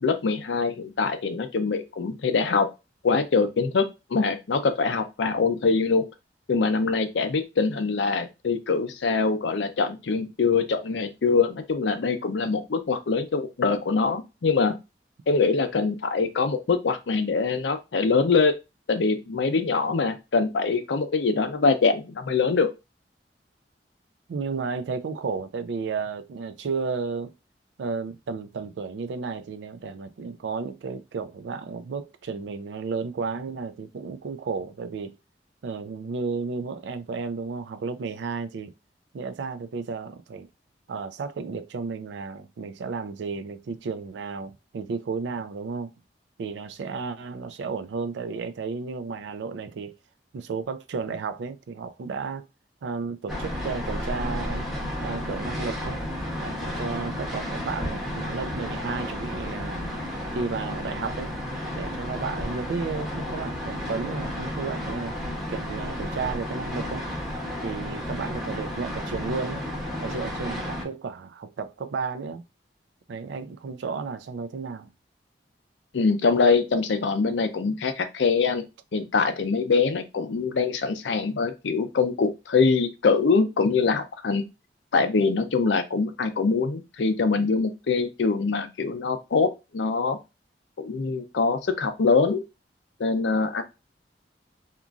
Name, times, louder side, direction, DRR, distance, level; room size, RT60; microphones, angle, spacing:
voice 1, 0.0-2.7 3.0-6.0 6.5-14.7 15.3-18.5 18.9-22.7 75.9-78.7 78.9-84.4 84.9-90.2 90.8-92.4 93.0-93.6, left 4 dB, 85° left, 0.5 m, -23 dB
voice 2, 24.3-27.3 27.8-35.2 35.6-38.7 39.1-40.5 40.9-45.9 46.4-50.0 50.3-52.5 52.8-54.7 55.0-56.0 56.4-60.0 60.3-61.3 61.8-65.2 65.5-67.1 67.6-69.6 70.0-72.4 73.1-74.9, right 5 dB, 75° right, 0.4 m, -33 dB
sound 1, 53.3-70.8, left 1 dB, ahead, 0.8 m, -32 dB
2.9 x 2.5 x 2.3 m
head